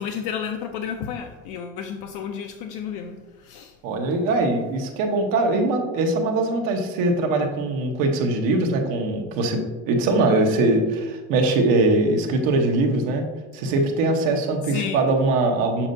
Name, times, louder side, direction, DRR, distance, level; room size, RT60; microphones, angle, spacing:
voice 1, 0.0-3.7 14.7-15.0, left 7 dB, 70° left, 4 dB, 0.6 m, -32 dB
voice 2, 3.8-13.3 13.5-15.9, right 2 dB, 80° right, 3 dB, 1.1 m, -22 dB
7.2 x 5.2 x 2.6 m, 1.2 s
cardioid pair, 165°, 33 cm